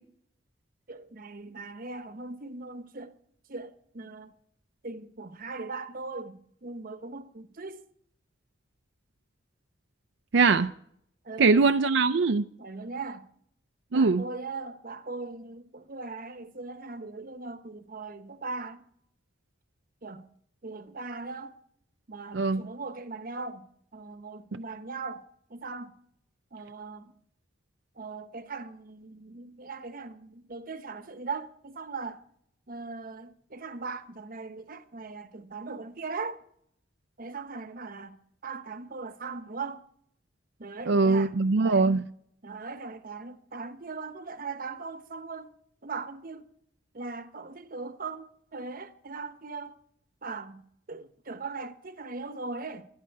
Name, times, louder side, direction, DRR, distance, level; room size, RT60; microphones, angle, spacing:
voice 1, 0.9-3.1 3.5-4.3 4.8-7.8 11.2-11.7 12.6-13.3 13.9-18.8 20.0-20.3 20.6-21.5 22.1-23.7 23.9-25.2 25.5-25.9 26.5-27.1 28.0-32.2 32.7-36.4 37.2-38.2 38.4-39.8 40.6-42.0 42.4-45.5 45.8-46.4 46.9-49.7 50.2-52.9, right 4 dB, 50° right, 1.0 m, -39 dB
voice 2, 10.3-10.7 11.4-12.5 13.9-14.2 22.3-22.6 40.9-42.0, right 4 dB, 80° right, 0.5 m, -22 dB
24.0 x 9.6 x 4.6 m
head